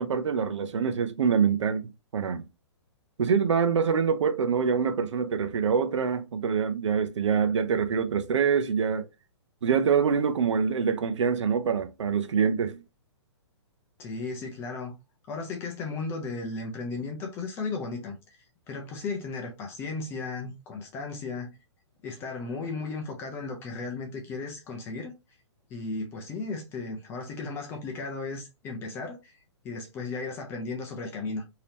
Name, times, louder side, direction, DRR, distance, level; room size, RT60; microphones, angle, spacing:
voice 1, 0.0-2.4 3.2-9.1 9.6-12.8, right 6 dB, 85° right, 0.6 m, -25 dB
voice 2, 14.0-14.9 15.3-21.5 22.0-25.1 25.7-31.4, left 3 dB, 15° left, 0.5 m, -35 dB
3.3 x 2.8 x 2.9 m
hypercardioid pair, 155°, 15 cm